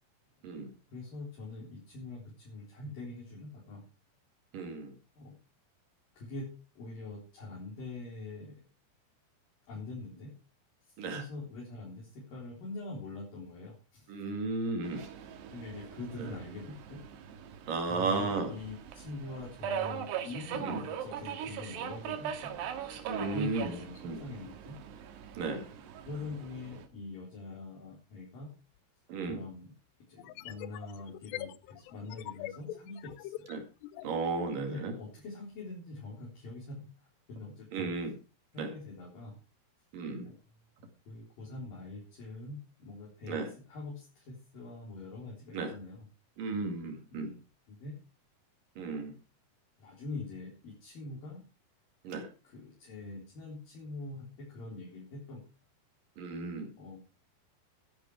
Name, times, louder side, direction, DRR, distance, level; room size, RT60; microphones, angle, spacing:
voice 1, 0.9-3.8 5.2-5.4 6.1-8.6 9.7-10.3 10.8-14.1 15.5-17.0 17.9-22.5 23.3-24.7 26.1-28.5 29.3-29.7 30.1-33.5 34.6-36.9 37.3-37.9 38.5-39.4 40.2-40.4 41.1-46.1 47.1-47.4 47.7-48.0 49.8-51.4 52.4-55.4 56.8-57.0, left 2 dB, 55° left, -3 dB, 5.5 m, -44 dB
voice 2, 4.5-5.0 11.0-11.2 14.1-15.1 16.2-16.3 17.7-18.5 20.6-20.8 23.1-24.2 25.4-25.7 29.1-29.4 33.5-33.6 34.0-34.9 37.7-38.1 38.6-38.7 39.9-40.3 43.3-43.5 45.5-45.7 46.4-47.3 48.8-49.1 52.0-52.3 56.2-56.7, right 3 dB, 60° right, 5 dB, 3.6 m, -34 dB
Subway metro underground, 14.8-26.9, right 8 dB, 85° right, 3.6 m, -41 dB
sound 1, 28.8-28.9 30.2-34.2, left 15 dB, 90° left, 2.9 m, -43 dB
14.0 x 10.5 x 4.7 m, 0.32 s
omnidirectional pair, 4.7 m